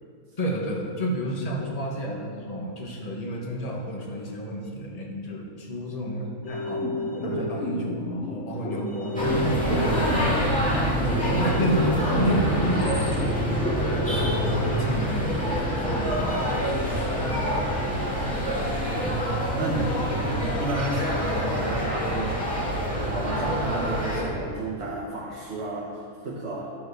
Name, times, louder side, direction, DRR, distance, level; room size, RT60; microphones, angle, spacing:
voice 1, 0.4-9.9 10.8-13.7 13.9-16.4, equal, 25° left, -2 dB, 1.4 m, -31 dB
sound 1, 6.4-16.9, left 1 dB, 45° left, 1.4 m, -32 dB
sound 2, 9.1-24.2, equal, 5° left, 2.4 m, -26 dB
voice 2, 18.9-26.8, right 2 dB, 50° right, -3 dB, 1.4 m, -32 dB
13.0 x 5.3 x 6.5 m, 2.2 s
omnidirectional pair, 1.6 m